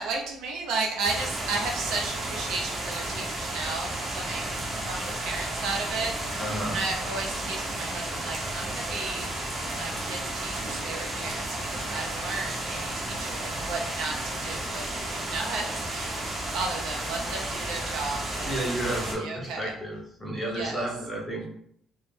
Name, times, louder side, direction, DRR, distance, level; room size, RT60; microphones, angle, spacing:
voice 1, 0.0-4.5 4.9-16.3 16.5-18.6 19.2-19.7 20.5-20.9, right 3 dB, 75° right, 0 dB, 0.5 m, -34 dB
sound 1, 1.0-19.1, right 1 dB, 25° right, 0.6 m, -33 dB
voice 2, 6.4-6.8 18.4-21.5, right 1 dB, 5° left, -4 dB, 0.7 m, -32 dB
2.1 x 2.0 x 3.1 m, 0.69 s
cardioid pair, 150°, 0 cm